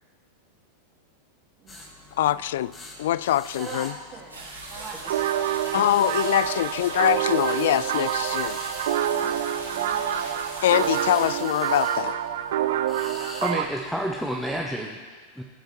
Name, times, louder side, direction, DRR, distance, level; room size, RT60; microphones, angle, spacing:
sound 1, 1.7-14.7, left 2 dB, 20° left, 1.9 m, -45 dB
voice 1, 2.2-2.7 3.0-3.9 5.7-8.6 10.6-12.2, left 13 dB, 55° left, 19 dB, 0.3 m, -23 dB
voice 2, 3.6-5.5 9.1-10.4, right 4 dB, 30° right, -1 dB, 2.7 m, -43 dB
sound 2, 4.3-11.2, right 2 dB, 75° right, 3.8 m, -39 dB
sound 3, 5.0-13.7, right 10 dB, 55° right, 0.6 m, -27 dB
voice 3, 13.4-15.4, right 1 dB, ahead, 1 dB, 0.9 m, -30 dB
18.5 x 7.9 x 4.5 m, 1.5 s
figure-of-eight pair, 90°, 0 cm